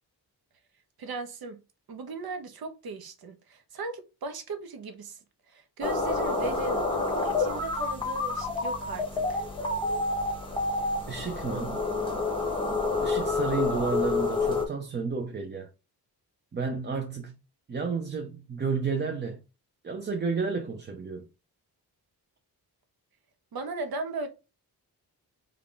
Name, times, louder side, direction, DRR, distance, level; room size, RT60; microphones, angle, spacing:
voice 1, 1.0-1.6 1.9-5.2 5.5-9.4 23.5-24.3, right 3 dB, 70° right, 0.8 m, -37 dB
sound 1, 5.8-14.7, left 3 dB, 15° left, 0.8 m, -28 dB
voice 2, 11.1-11.8 13.0-15.7 16.5-17.4 17.7-19.4 19.8-21.3, right 5 dB, 30° right, 0.4 m, -31 dB
3.6 x 2.3 x 3.6 m
wide cardioid pair, 140°, 39 cm